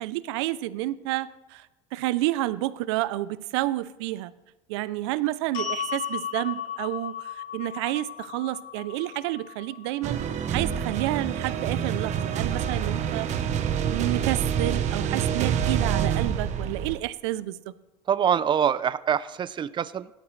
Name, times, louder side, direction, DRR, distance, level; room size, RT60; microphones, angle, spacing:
voice 1, 0.0-1.7 1.9-4.3 4.7-10.2 10.5-13.3 13.9-17.6, right 16 dB, 90° right, 16 dB, 0.5 m, -30 dB
sound 1, 5.5-11.8, left 8 dB, 70° left, 3.0 m, -36 dB
sound 2, 10.0-17.0, right 8 dB, 55° right, 1.1 m, -27 dB
voice 2, 18.1-20.1, right 8 dB, 35° right, 15 dB, 0.5 m, -25 dB
17.5 x 12.5 x 3.3 m, 1.0 s
supercardioid pair, 90°, 14 cm